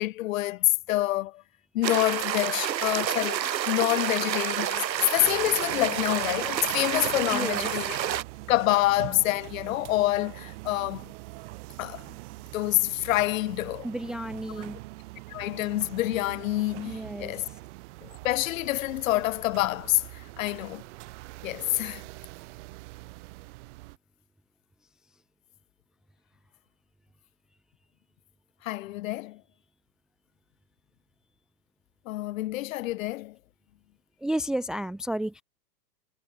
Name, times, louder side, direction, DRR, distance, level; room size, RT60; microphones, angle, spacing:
voice 1, 0.0-1.4 1.7-8.0 8.5-11.1 11.8-12.1 12.5-13.9 14.6-14.7 15.3-17.5 18.0-20.8 21.4-22.0 28.6-29.4 32.0-33.4, left 17 dB, 50° left, 3.1 m, -27 dB
sound 1, 1.8-8.2, right 10 dB, 85° right, 2.2 m, -29 dB
sound 2, 5.2-24.0, right 22 dB, 45° right, 4.2 m, -43 dB
voice 2, 7.3-7.7 13.8-14.8 16.9-17.3 19.1-19.2 34.2-35.4, right 1 dB, ahead, 0.7 m, -32 dB
hypercardioid pair, 145°, 50 cm